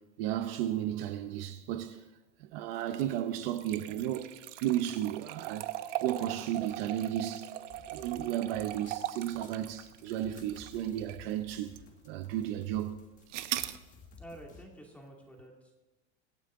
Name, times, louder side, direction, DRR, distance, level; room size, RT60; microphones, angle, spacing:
voice 1, 0.2-2.0 2.4-7.5 7.9-11.7 12.1-13.0, right 12 dB, 55° right, 1.0 m, -34 dB
sound 1, 2.8-11.2 11.8-11.9 13.3-13.8, right 14 dB, 80° right, 1.0 m, -40 dB
sound 2, 7.7-14.7, left 4 dB, 20° left, 1.6 m, -56 dB
voice 2, 14.2-15.7, right 1 dB, 5° left, 2.4 m, -50 dB
25.0 x 9.1 x 3.8 m
supercardioid pair, 160°, 36 cm